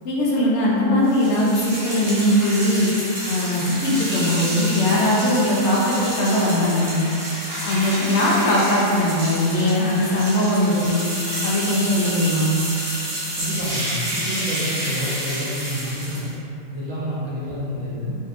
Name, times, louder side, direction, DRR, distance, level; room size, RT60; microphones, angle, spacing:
voice 1, 0.0-2.9 3.2-7.1 7.7-11.1 11.4-12.6, left 1 dB, 70° left, -6 dB, 0.6 m, -20 dB
sound 1, 1.1-16.3, right 1 dB, 25° right, 0.8 m, -29 dB
voice 2, 13.3-16.3 16.7-18.1, equal, 65° right, -8 dB, 1.0 m, -28 dB
2.6 x 2.6 x 2.4 m, 2.7 s
omnidirectional pair, 1.7 m